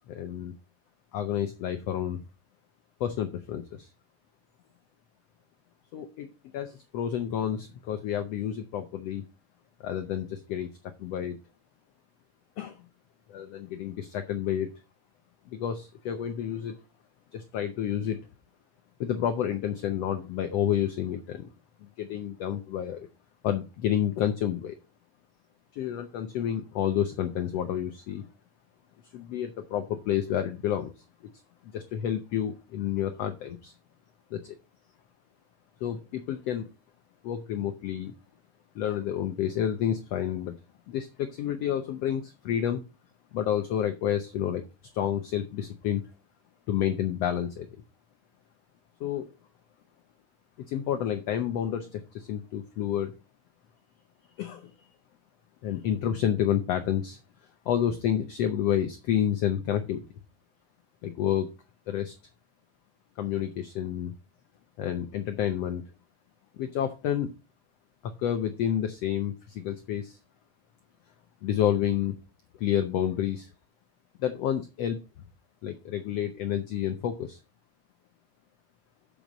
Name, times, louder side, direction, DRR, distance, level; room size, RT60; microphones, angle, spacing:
voice 1, 0.1-0.5 1.1-2.2 3.0-3.9 5.9-6.3 6.5-9.2 9.8-10.7 11.0-11.4 12.6-12.8 13.3-14.7 15.5-16.8 17.3-18.2 19.0-21.5 22.0-23.1 23.4-24.8 25.7-28.2 29.1-31.0 31.7-33.7 34.3-34.5 35.8-36.7 37.2-38.1 38.7-40.5 40.9-42.8 43.3-44.6 44.9-46.0 46.7-47.7 49.0-49.3 50.7-53.1 54.4-54.7 55.6-57.2 57.7-60.0 61.0-61.5 61.9-62.1 63.2-64.1 64.8-65.8 66.6-67.3 68.0-70.2 71.4-72.1 72.6-73.5 74.2-75.0 75.6-77.4, left 10 dB, 80° left, 8 dB, 1.4 m, -29 dB
7.0 x 6.1 x 5.0 m, 0.28 s
omnidirectional pair, 3.8 m